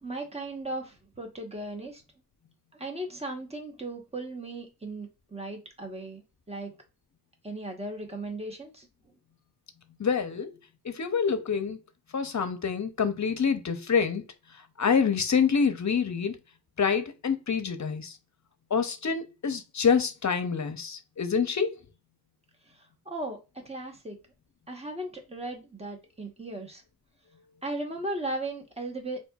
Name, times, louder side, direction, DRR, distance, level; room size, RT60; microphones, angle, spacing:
voice 1, 0.0-2.0 2.7-6.7 7.4-8.9 22.7-24.2 24.7-26.8 27.6-29.2, right 2 dB, 15° right, 1.0 m, -37 dB
voice 2, 10.0-10.5 10.8-11.8 12.1-14.2 14.8-16.4 16.8-18.2 18.7-21.7, left 6 dB, 50° left, 0.6 m, -26 dB
4.2 x 2.7 x 2.3 m
wide cardioid pair, 65°, 38 cm